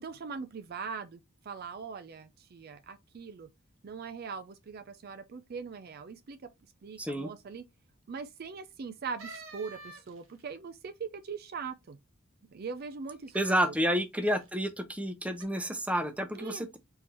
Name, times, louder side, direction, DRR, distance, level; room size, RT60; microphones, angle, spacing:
voice 1, 0.0-3.5 3.8-6.5 6.8-7.6 8.1-12.0 12.5-13.3 13.7-13.8 16.3-16.7, right 5 dB, 45° right, 0.4 m, -41 dB
voice 2, 7.0-7.3 13.3-16.8, equal, 5° right, 0.6 m, -30 dB
sound 1, 9.2-10.4 13.3-13.7 14.3-14.7 15.4-15.5, right 3 dB, 65° right, 1.1 m, -47 dB
4.3 x 3.8 x 2.9 m
head